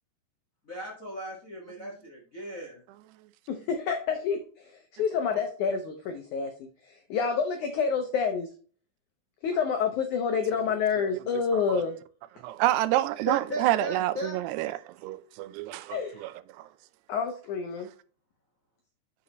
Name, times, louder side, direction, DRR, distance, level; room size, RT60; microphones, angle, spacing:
voice 1, 0.7-2.8 13.2-14.7, left 1 dB, 65° left, 0.8 m, -37 dB
voice 2, 3.5-8.5 9.4-12.0 15.9-16.2 17.1-17.9, left 6 dB, 90° left, 1.7 m, -28 dB
voice 3, 12.4-16.3 16.6-16.7, right 15 dB, 85° right, 2.6 m, -28 dB
8.4 x 6.3 x 3.0 m
omnidirectional pair, 4.7 m